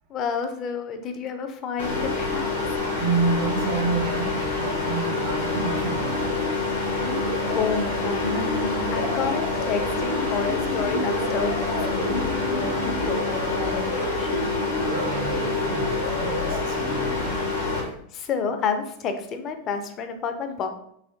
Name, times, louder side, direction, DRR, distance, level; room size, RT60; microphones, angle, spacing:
voice 1, 0.1-2.8 6.7-7.0 7.5-14.5 17.8-20.7, left 5 dB, 30° left, 7 dB, 0.4 m, -30 dB
sound 1, 1.8-17.8, left 3 dB, 70° left, 1.0 m, -27 dB
voice 2, 3.0-6.4 14.6-17.9, right 4 dB, 45° right, 3 dB, 0.4 m, -30 dB
sound 2, 7.0-16.6, left 1 dB, 85° left, 0.6 m, -32 dB
4.0 x 2.8 x 2.6 m, 0.70 s
figure-of-eight pair, 90°, 0 cm